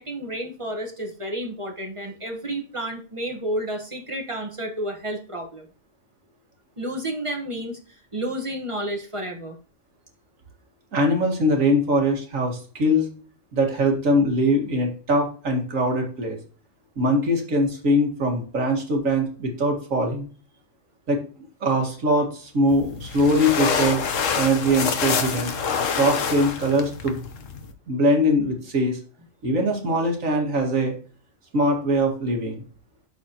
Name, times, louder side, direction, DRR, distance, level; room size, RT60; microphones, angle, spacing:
voice 1, 0.0-5.6 6.8-7.8 8.1-9.6, right 1 dB, 25° right, 2 dB, 1.3 m, -31 dB
voice 2, 10.9-13.1 13.5-16.4 17.0-20.3 21.1-21.2 21.6-24.0 24.4-25.5 26.0-27.2 27.9-29.0 29.4-31.0 31.5-32.6, equal, 70° right, 2 dB, 2.3 m, -22 dB
sound 1, 22.7-27.7, left 6 dB, 65° left, 1.3 m, -26 dB
12.0 x 4.2 x 2.9 m, 0.40 s
omnidirectional pair, 1.4 m